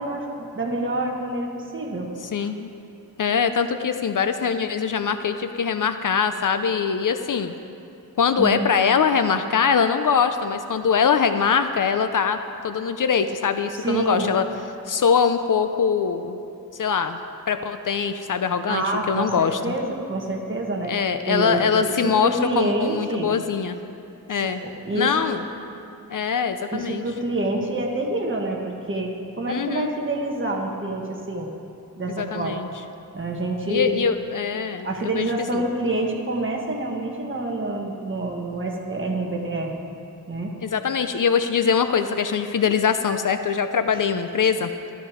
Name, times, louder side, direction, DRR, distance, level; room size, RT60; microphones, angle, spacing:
voice 1, 0.0-2.1 2.4-2.5 8.4-8.7 13.7-14.3 18.7-20.9 21.2-23.3 24.3-25.3 26.7-31.5 31.9-32.6 33.1-34.0 34.8-39.7 40.3-40.5, right 2 dB, 30° right, 0 dB, 1.4 m, -27 dB
voice 2, 2.3-2.7 3.2-7.5 8.2-12.4 12.6-14.4 14.9-16.4 16.8-17.2 17.5-19.6 20.9-23.8 24.3-24.6 24.9-25.4 26.1-27.0 29.5-29.9 32.2-32.7 33.7-35.6 40.6-44.7, left 6 dB, 55° left, 9 dB, 0.6 m, -22 dB
13.0 x 12.0 x 5.0 m, 2.6 s
wide cardioid pair, 175°, 38 cm